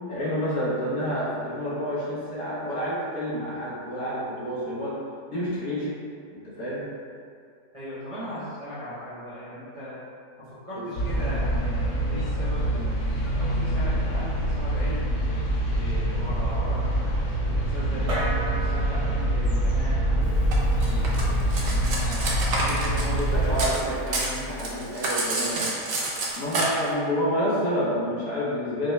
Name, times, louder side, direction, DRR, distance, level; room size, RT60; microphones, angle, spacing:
voice 1, 0.1-5.0 5.3-5.9 6.3-6.9 10.8-10.9 23.1-25.7 26.4-28.9, equal, 65° left, -8 dB, 1.4 m, -29 dB
voice 2, 7.7-10.0 10.4-15.2 15.7-20.4 20.8-23.6, equal, 30° right, -13 dB, 0.7 m, -38 dB
sound 1, 10.9-23.7, right 1 dB, 80° left, 1.3 m, -26 dB
sound 2, 18.1-24.8, equal, 50° right, 1.2 m, -31 dB
Cutlery silverware, 20.5-23.8 24.1-26.7, right 2 dB, 65° right, 0.5 m, -28 dB
5.2 x 2.2 x 3.1 m, 2.3 s
omnidirectional pair, 1.7 m